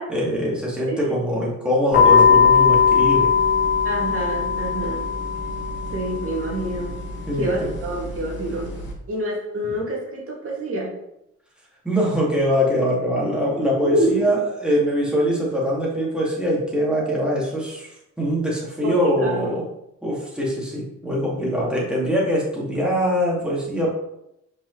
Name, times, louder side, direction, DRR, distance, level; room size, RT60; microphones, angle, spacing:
voice 1, 0.1-3.3 7.3-7.7 11.8-19.7 20.0-23.9, equal, 5° right, -5 dB, 2.3 m, -23 dB
voice 2, 0.9-1.2 3.8-5.1 5.9-6.9 7.3-8.7 9.1-10.9 13.8-14.3 18.8-19.5, right 1 dB, 50° right, -3 dB, 2.4 m, -27 dB
sound 1, 1.9-8.9, left 6 dB, 35° left, 1.9 m, -20 dB
5.4 x 5.3 x 3.3 m, 0.83 s
cardioid pair, 90°, 30 cm